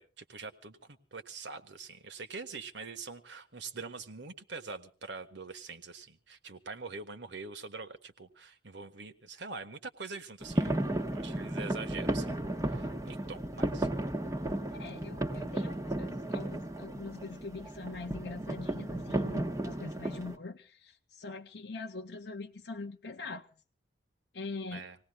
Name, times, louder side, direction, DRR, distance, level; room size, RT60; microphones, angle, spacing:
voice 1, 0.0-10.8 11.1-13.9 24.7-25.0, right 4 dB, 75° right, 1.4 m, -44 dB
sound 1, 10.4-20.4, right 1 dB, 15° right, 1.3 m, -34 dB
voice 2, 14.7-23.5 24.3-24.8, left 3 dB, 65° left, 0.8 m, -43 dB
26.5 x 18.5 x 2.3 m
head